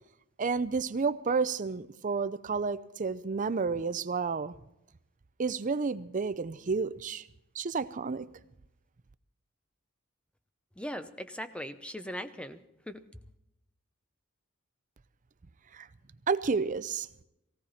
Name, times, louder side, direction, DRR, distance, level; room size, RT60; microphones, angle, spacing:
voice 1, 0.4-4.5 5.4-7.2 7.6-8.3 15.7-15.9 16.3-17.1, right 4 dB, 35° right, 14 dB, 0.5 m, -31 dB
voice 2, 10.8-12.6 12.9-13.0, equal, 5° left, 10 dB, 0.7 m, -39 dB
18.0 x 17.5 x 4.2 m, 0.83 s
head